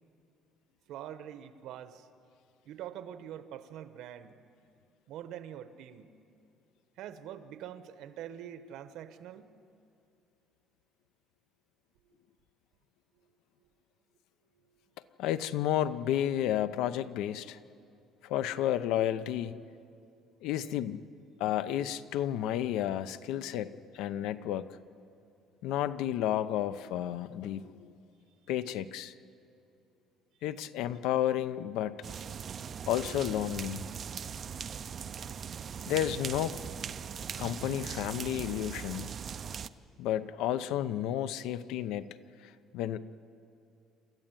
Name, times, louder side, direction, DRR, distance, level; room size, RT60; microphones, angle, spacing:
voice 1, 0.9-2.1 2.6-4.4 5.1-6.1 7.0-9.5, right 10 dB, 60° right, 11 dB, 1.1 m, -44 dB
voice 2, 15.2-17.6 18.2-19.6 20.4-21.0 21.4-24.7 25.6-27.9 28.5-29.1 30.4-32.0 32.9-33.8 35.9-36.6 37.4-39.1 40.0-42.1 42.4-43.0, left 11 dB, 70° left, 13 dB, 0.7 m, -31 dB
sound 1, 32.0-39.7, right 7 dB, 30° right, 0.5 m, -40 dB
27.5 x 13.5 x 9.1 m, 2.5 s
cardioid pair, 175°, 0 cm